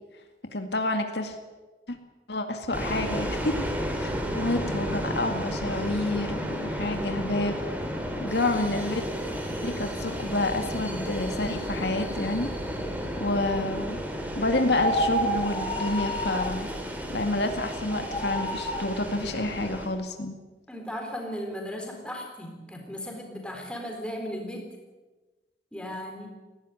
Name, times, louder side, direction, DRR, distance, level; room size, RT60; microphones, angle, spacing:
voice 1, 0.5-1.4 1.9-2.0 2.3-3.7 4.0-7.6 8.2-9.0 9.6-12.5 13.2-14.0 14.4-16.7 17.1-20.3, left 2 dB, 75° left, 5 dB, 2.1 m, -28 dB
sound 1, 2.7-19.9, equal, 10° right, 2.9 m, -33 dB
sound 2, 14.7-16.6 17.9-18.9, equal, 30° left, 5.3 m, -29 dB
voice 2, 20.7-24.7 25.7-26.3, equal, 5° left, 1 dB, 4.0 m, -36 dB
18.5 x 16.0 x 9.9 m, 1.2 s
head